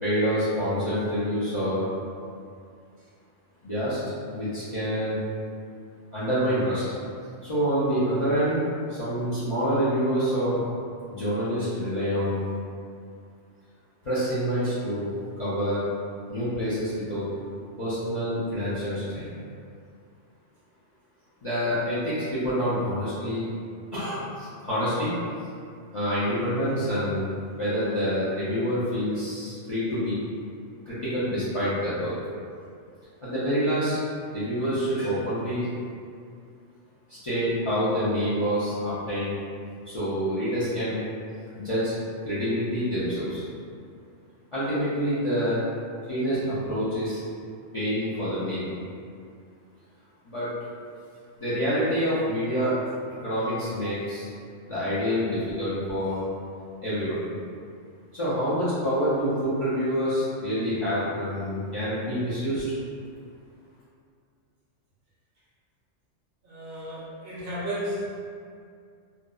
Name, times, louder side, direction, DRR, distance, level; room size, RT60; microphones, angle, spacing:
voice 1, 0.0-1.8 3.6-4.0 4.3-5.2 6.1-6.8 7.4-8.6 8.9-10.6 11.1-12.4 14.0-15.1 15.4-15.8 16.3-17.3 17.8-19.3 21.4-23.5 23.9-25.1 25.9-27.2 27.6-30.2 30.9-32.1 33.2-34.0 34.3-35.7 37.1-39.4 39.9-41.0 41.5-41.9 42.2-43.4 44.5-45.6 46.1-47.2 47.7-48.7 50.3-50.5 51.4-52.7 53.1-54.3 54.7-56.2 56.8-57.2 58.1-62.7, equal, 45° left, -13 dB, 0.4 m, -27 dB
voice 2, 66.4-68.1, equal, 60° right, -9 dB, 0.8 m, -33 dB
2.6 x 2.0 x 2.3 m, 2.3 s
omnidirectional pair, 1.2 m